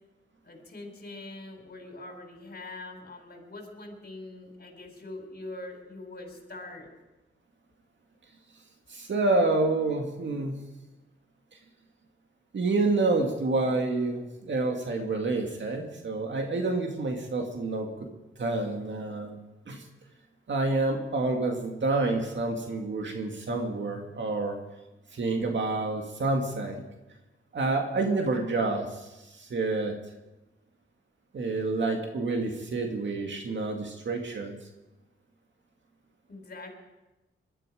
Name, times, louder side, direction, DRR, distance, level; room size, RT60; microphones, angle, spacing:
voice 1, 0.4-6.9 36.3-36.7, left 2 dB, 50° left, 3 dB, 4.7 m, -43 dB
voice 2, 8.9-10.6 12.5-17.9 18.4-19.4 19.7-19.8 20.5-24.6 25.1-26.8 27.5-29.9 31.3-34.6, right 3 dB, 60° right, 3 dB, 2.2 m, -28 dB
20.5 x 12.5 x 5.0 m, 1.0 s
cardioid pair, 65°, 21 cm